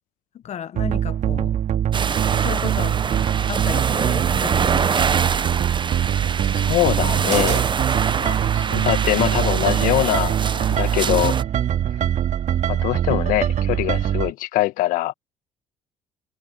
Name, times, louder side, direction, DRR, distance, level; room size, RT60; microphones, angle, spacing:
voice 1, 0.4-1.6 2.4-3.0 3.5-5.1, left 9 dB, 50° left, 1.2 m, -33 dB
sound 1, 0.7-14.3, right 10 dB, 55° right, 2.4 m, -23 dB
sound 2, 1.9-11.4, right 6 dB, 35° right, 1.1 m, -25 dB
voice 2, 6.4-7.7 8.2-11.4 12.7-15.1, left 17 dB, 70° left, 1.6 m, -23 dB
hypercardioid pair, 60°, 14 cm